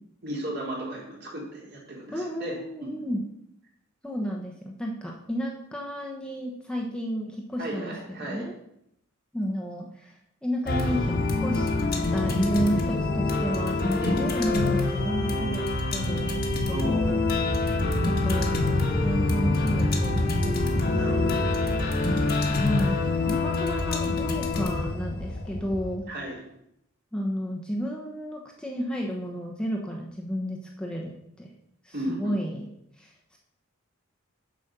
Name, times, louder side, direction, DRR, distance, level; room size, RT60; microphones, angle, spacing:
voice 1, 0.2-3.0 7.6-8.4 14.0-14.2 16.7-17.2 20.9-21.9 23.2-23.4 26.1-26.4 31.9-32.6, right 1 dB, 50° right, -3 dB, 3.0 m, -35 dB
voice 2, 2.1-3.2 4.0-7.9 8.2-8.5 9.3-10.2 10.4-11.7 12.1-16.3 16.7-17.2 18.0-21.2 22.6-26.0 27.1-31.1 31.4-31.5 31.8-32.7 33.0-33.4, equal, 5° left, -1 dB, 1.0 m, -32 dB
sound 1, 10.7-26.0, left 2 dB, 45° left, 1.4 m, -26 dB
8.2 x 5.3 x 6.8 m, 0.77 s
head